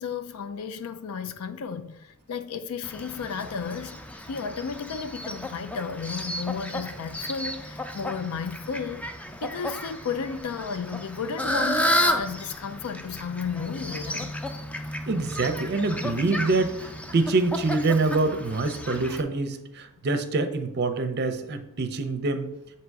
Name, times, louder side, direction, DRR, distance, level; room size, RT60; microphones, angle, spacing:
voice 1, 0.0-9.1 9.4-14.3, left 6 dB, 80° left, 0.4 m, -33 dB
Fowl, 2.8-19.2, equal, 5° left, 0.3 m, -32 dB
voice 2, 15.1-22.5, right 3 dB, 50° right, 0.5 m, -25 dB
7.3 x 2.9 x 4.6 m
head